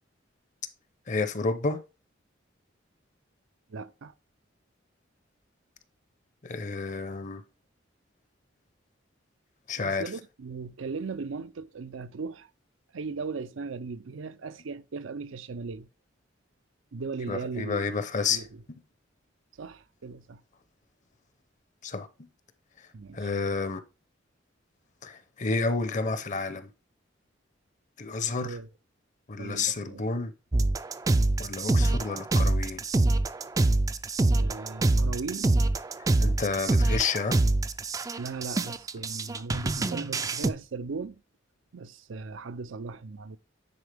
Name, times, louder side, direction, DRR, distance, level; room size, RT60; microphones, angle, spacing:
voice 1, 1.1-1.8 6.4-7.4 9.7-10.0 17.3-18.4 21.8-22.3 23.1-23.8 25.0-26.7 28.0-28.6 29.3-30.3 31.4-32.8 36.2-37.4, left 4 dB, 40° left, 0.7 m, -30 dB
voice 2, 3.7-4.1 9.8-12.5 12.9-15.9 16.9-17.8 18.3-18.6 19.6-20.4 22.9-23.3 28.4-28.7 29.4-30.1 34.4-35.5 38.2-41.2 41.7-43.4, right 4 dB, 85° right, 0.5 m, -38 dB
sound 1, 30.5-40.5, right 2 dB, 20° right, 0.3 m, -25 dB
9.7 x 4.5 x 3.4 m
head